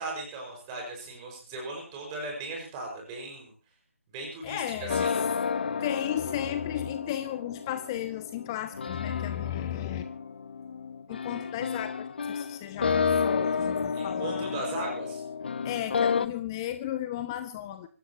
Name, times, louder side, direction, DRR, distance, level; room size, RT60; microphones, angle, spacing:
voice 1, 0.0-3.5 4.1-5.1 13.9-15.2, right 2 dB, 15° right, 5.4 m, -37 dB
voice 2, 4.4-5.1 5.8-10.1 11.1-14.6 15.6-17.9, left 12 dB, 15° left, 0.7 m, -34 dB
sound 1, 4.9-16.3, left 6 dB, 45° left, 1.1 m, -31 dB
25.5 x 15.0 x 3.0 m
figure-of-eight pair, 155°, 8 cm